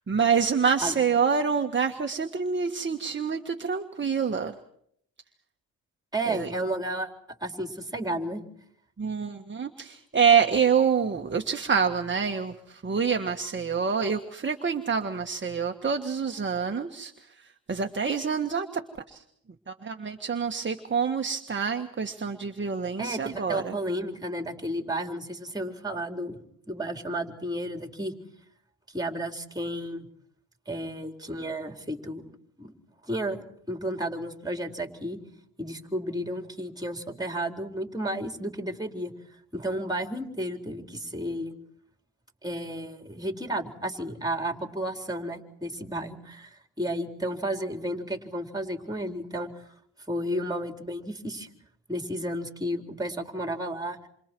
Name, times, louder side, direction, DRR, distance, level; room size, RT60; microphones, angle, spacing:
voice 1, 0.1-4.5 6.3-6.5 9.0-18.7 19.1-19.2 19.7-23.8, right 6 dB, 30° right, 4 dB, 1.6 m, -26 dB
voice 2, 6.1-7.1 7.4-8.4 23.0-26.4 26.7-28.1 28.9-30.1 30.7-32.2 32.6-32.7 33.0-33.4 33.7-35.2 35.6-39.1 39.5-41.5 42.4-49.7 50.1-51.5 51.9-54.0, right 1 dB, 10° right, 4 dB, 4.1 m, -32 dB
28.0 x 27.5 x 4.6 m, 0.68 s
cardioid pair, 80°, 37 cm